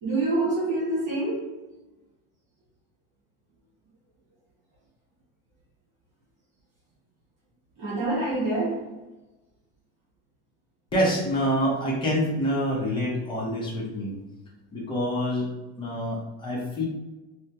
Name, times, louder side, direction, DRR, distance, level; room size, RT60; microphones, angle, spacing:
voice 1, 0.0-1.4 7.8-8.8, right 2 dB, 60° right, -7 dB, 1.4 m, -26 dB
voice 2, 10.9-14.1 14.7-15.5 15.8-16.8, equal, 15° left, -4 dB, 0.6 m, -26 dB
3.4 x 2.1 x 2.7 m, 1.1 s
cardioid pair, 180°, 31 cm